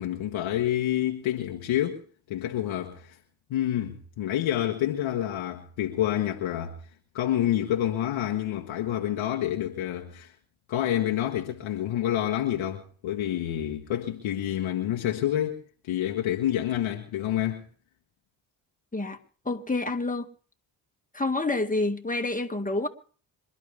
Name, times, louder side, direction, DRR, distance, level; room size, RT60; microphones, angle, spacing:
voice 1, 0.0-2.0 2.3-3.2 3.5-6.8 7.1-10.3 10.7-17.6, left 12 dB, 80° left, 1.6 m, -28 dB
voice 2, 19.5-20.3 21.1-22.9, left 2 dB, 15° left, 2.1 m, -28 dB
26.5 x 11.5 x 3.5 m
supercardioid pair, 45°, 48 cm